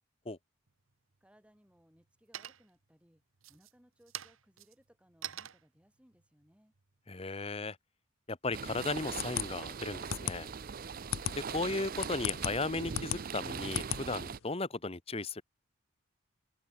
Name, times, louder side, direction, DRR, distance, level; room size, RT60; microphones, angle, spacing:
sound 1, 0.7-1.3 1.7-2.1 2.3-2.9 3.3-7.8, right 11 dB, 80° right, 1.1 m, -47 dB
voice 1, 1.2-3.2 3.5-6.7, equal, 5° right, 7.0 m, -66 dB
voice 2, 7.1-7.8 8.3-10.5 11.4-15.4, left 3 dB, 30° left, 1.0 m, -36 dB
sound 2, 8.5-14.4, right 6 dB, 45° right, 0.5 m, -41 dB
sound 3, 9.2-14.5, left 9 dB, 75° left, 0.8 m, -37 dB
open air
head